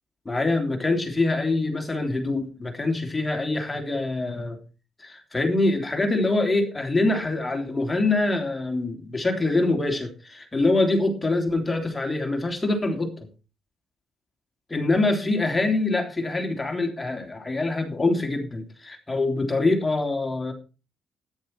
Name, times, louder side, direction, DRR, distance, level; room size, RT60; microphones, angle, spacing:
voice 1, 0.2-4.6 5.0-13.1 14.7-20.5, left 2 dB, 15° left, 3 dB, 3.3 m, -24 dB
13.5 x 10.5 x 4.5 m, 0.33 s
cardioid pair, 90°, 0 cm